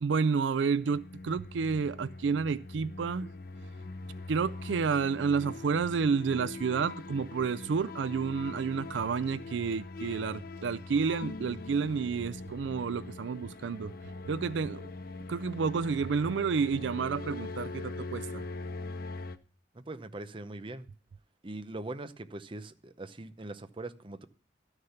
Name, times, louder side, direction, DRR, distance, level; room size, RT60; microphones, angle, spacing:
voice 1, 0.0-3.3 4.3-13.9 14.3-14.8 15.3-18.4, right 5 dB, 75° right, 0.4 m, -30 dB
sound 1, 0.8-19.4, left 3 dB, 50° left, 0.7 m, -42 dB
voice 2, 19.7-20.9 21.4-24.3, right 2 dB, 25° right, 0.7 m, -41 dB
13.0 x 6.6 x 5.7 m
head